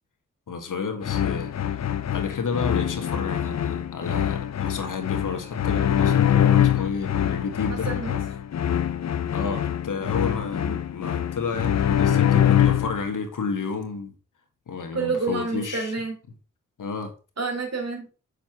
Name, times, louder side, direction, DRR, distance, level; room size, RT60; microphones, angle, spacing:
voice 1, 0.5-1.5 2.1-7.9 9.3-14.1 14.7-15.9 16.8-17.1, left 5 dB, 70° left, 6 dB, 1.7 m, -31 dB
sound 1, 1.0-13.1, left 10 dB, 55° left, 0.6 m, -24 dB
voice 2, 7.7-8.2 14.9-16.2 17.4-18.1, right 4 dB, 50° right, 2 dB, 3.6 m, -28 dB
6.9 x 6.2 x 4.4 m, 0.34 s
cardioid pair, 45°, 32 cm